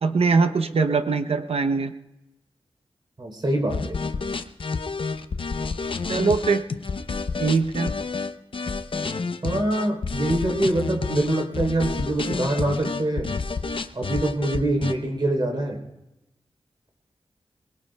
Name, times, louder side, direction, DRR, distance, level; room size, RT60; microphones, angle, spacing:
voice 1, 0.0-1.9 6.1-6.6 7.4-7.9, right 4 dB, 80° right, 8 dB, 0.7 m, -22 dB
voice 2, 3.2-4.0 9.4-13.3 13.9-15.8, right 1 dB, 50° right, 2 dB, 3.4 m, -24 dB
sound 1, 3.7-14.9, left 4 dB, 60° left, 0.6 m, -29 dB
22.5 x 20.0 x 2.3 m, 0.96 s
wide cardioid pair, 70°, 10 cm